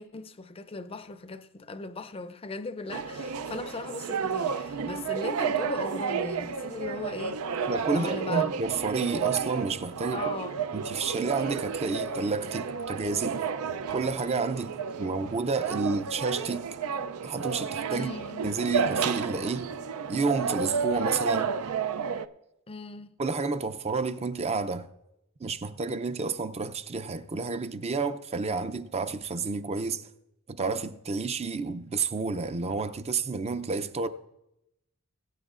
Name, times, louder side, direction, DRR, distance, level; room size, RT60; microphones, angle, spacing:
voice 1, 0.0-7.4 7.9-8.5 10.1-10.7 17.9-18.6 22.7-23.1, left 3 dB, 25° left, 0.5 m, -38 dB
sound 1, 2.9-22.3, right 6 dB, 85° right, 0.4 m, -31 dB
voice 2, 7.7-10.3 10.7-13.4 13.9-14.7 15.0-16.7 17.2-18.1 18.4-19.7 20.1-21.6 23.2-24.9 25.4-30.1 30.5-34.1, right 4 dB, 30° right, 0.5 m, -30 dB
21.5 x 8.7 x 2.5 m
head